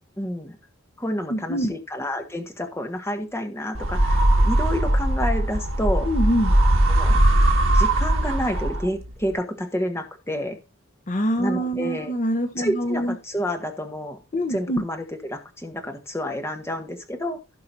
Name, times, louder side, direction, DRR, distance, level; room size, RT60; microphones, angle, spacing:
voice 1, 0.2-0.6 1.0-6.1 6.9-7.2 7.7-10.6 11.4-12.1 12.6-14.2 14.5-17.4, equal, 15° left, 5 dB, 1.6 m, -29 dB
voice 2, 1.3-1.7 6.0-6.6 11.1-13.1 14.3-14.8, equal, 40° left, 6 dB, 0.9 m, -24 dB
sound 1, 3.7-9.1, right 1 dB, 70° right, 1.8 m, -20 dB
16.5 x 5.5 x 2.6 m, 0.30 s
head